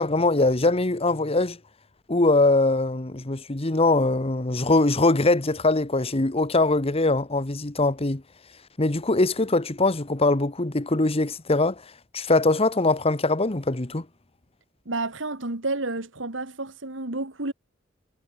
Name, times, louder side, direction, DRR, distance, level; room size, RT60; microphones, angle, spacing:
voice 1, 0.0-1.6 2.1-8.2 8.8-11.8 12.1-14.0, left 2 dB, 30° left, 1.2 m, -22 dB
voice 2, 14.9-17.5, right 2 dB, 75° right, 2.8 m, -30 dB
head